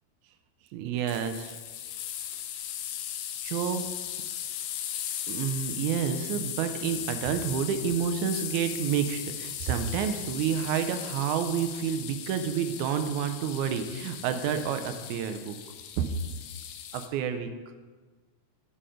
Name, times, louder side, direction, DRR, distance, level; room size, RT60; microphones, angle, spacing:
voice 1, 0.7-1.6 3.4-3.8 5.3-15.6 16.0-16.1 16.9-17.9, right 8 dB, 80° right, 8 dB, 1.9 m, -29 dB
sound 1, 1.1-17.1, left 10 dB, 80° left, 2.0 m, -38 dB
7.6 x 5.6 x 4.9 m, 1.4 s
omnidirectional pair, 3.5 m